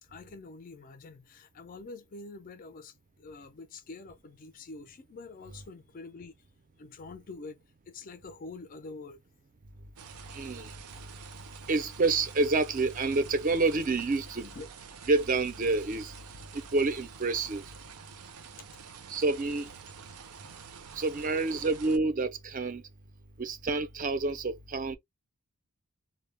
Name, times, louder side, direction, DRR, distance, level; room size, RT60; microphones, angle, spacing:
voice 1, 0.0-6.3 6.8-7.6 7.9-9.2 14.4-14.7 16.4-16.5 21.2-21.7, left 3 dB, 40° left, 0.3 m, -46 dB
sound 1, 10.0-22.0, right 6 dB, 90° right, 0.5 m, -48 dB
voice 2, 10.3-10.7 11.7-14.5 15.1-16.1 16.7-17.6 19.1-19.7 21.0-22.8 23.4-25.0, right 3 dB, 35° right, 0.4 m, -28 dB
2.1 x 2.0 x 3.2 m
head